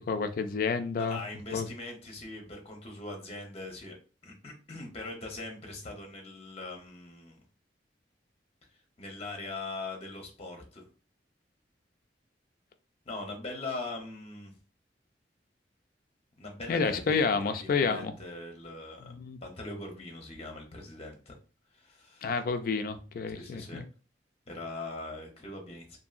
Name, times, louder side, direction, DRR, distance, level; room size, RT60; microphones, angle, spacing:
voice 1, 0.1-1.2 1.5-1.7 16.7-18.1 19.1-19.4 22.2-23.8, left 5 dB, 55° left, 0.3 m, -29 dB
voice 2, 1.0-4.0 4.2-7.4 9.0-10.8 13.1-14.5 16.4-19.2 19.4-21.3 21.7-22.3 23.3-23.8 24.5-26.0, left 2 dB, 35° left, 0.8 m, -41 dB
2.8 x 2.6 x 2.4 m
head